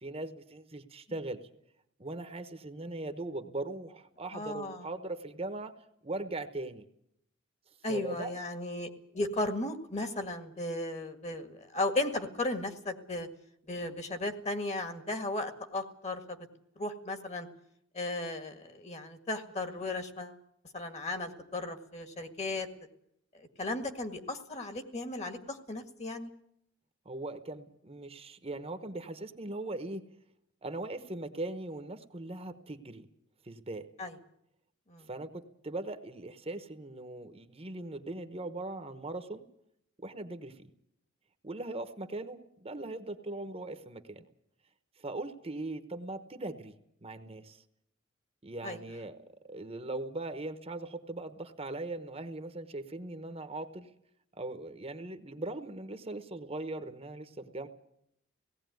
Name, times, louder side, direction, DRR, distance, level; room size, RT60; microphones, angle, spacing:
voice 1, 0.0-1.4 2.0-5.8 6.0-6.9 7.9-8.3 27.0-30.0 30.6-33.1 33.4-33.9 35.1-39.4 40.0-40.7 41.4-44.3 45.0-46.7 47.0-47.6 48.4-53.9 54.3-57.7, right 2 dB, 30° right, 9 dB, 1.1 m, -40 dB
voice 2, 4.3-4.9 7.8-13.3 13.7-16.4 16.8-17.5 17.9-20.4 20.7-22.7 23.4-26.3 34.0-34.1 34.9-35.1 48.6-48.8, left 2 dB, 35° left, 7 dB, 1.9 m, -35 dB
18.0 x 16.5 x 9.3 m, 0.74 s
head